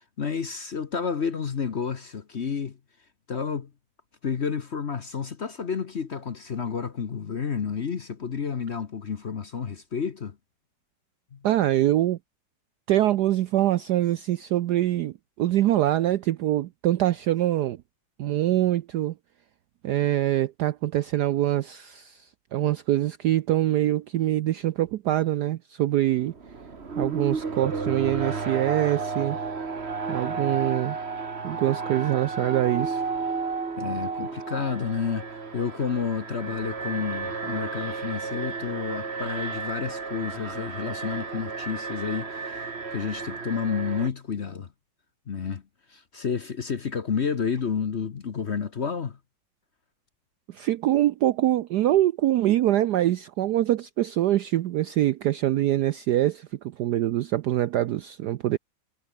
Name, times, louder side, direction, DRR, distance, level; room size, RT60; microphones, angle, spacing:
voice 1, 0.2-2.8 3.3-3.7 4.2-10.4 11.3-11.4 33.8-44.7 45.3-45.6 45.9-49.2, left 6 dB, 45° left, 1.0 m, -30 dB
voice 2, 11.4-12.2 12.9-17.8 18.2-19.1 19.8-26.3 27.0-29.5 30.1-31.0 31.4-33.0 50.5-58.6, right 13 dB, 70° right, 1.0 m, -24 dB
Alarm, 26.2-44.1, right 4 dB, 30° right, 2.0 m, -32 dB
omnidirectional pair, 2.2 m